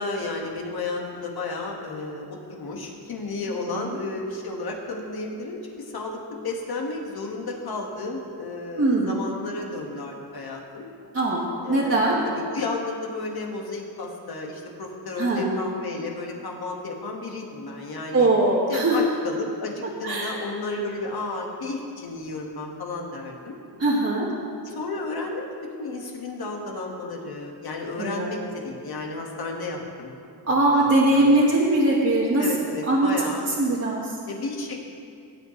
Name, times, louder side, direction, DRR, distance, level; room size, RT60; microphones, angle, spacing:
voice 1, 0.0-6.2 6.4-10.9 11.6-18.3 18.7-23.6 24.7-30.1 30.4-31.6 32.4-33.5 34.3-34.8, left 3 dB, 60° left, 0 dB, 1.9 m, -33 dB
voice 2, 8.8-9.1 11.1-12.2 15.2-15.6 18.1-19.0 20.0-20.4 23.8-24.3 28.0-28.3 30.5-32.5 32.9-33.1 33.6-34.2, right 2 dB, 35° right, -6 dB, 1.7 m, -21 dB
17.5 x 8.5 x 3.3 m, 2.4 s
cardioid pair, 90°, 41 cm